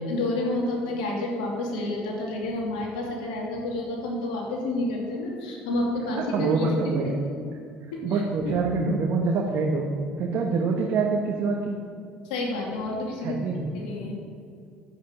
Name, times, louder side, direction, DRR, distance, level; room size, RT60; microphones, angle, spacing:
voice 1, 0.1-7.1 7.9-8.5 12.2-13.4 13.7-14.2, left 2 dB, 85° left, -1 dB, 2.6 m, -30 dB
voice 2, 6.3-7.2 8.0-9.9 10.2-11.8 13.2-13.7, right 4 dB, 55° right, 1 dB, 1.4 m, -25 dB
9.5 x 8.3 x 8.0 m, 2.4 s
supercardioid pair, 80°, 5 cm